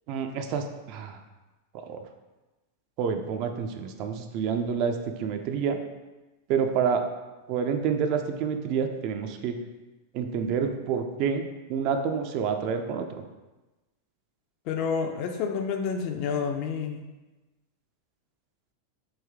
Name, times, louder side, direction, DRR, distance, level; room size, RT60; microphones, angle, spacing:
voice 1, 0.1-1.2 1.9-2.0 3.0-5.8 6.5-7.0 7.5-9.5 10.1-11.4 11.7-13.0, right 6 dB, 40° right, 6 dB, 0.3 m, -28 dB
voice 2, 14.7-17.0, left 6 dB, 40° left, 5 dB, 0.4 m, -29 dB
3.3 x 2.7 x 3.5 m, 1.1 s
figure-of-eight pair, 90°, 0 cm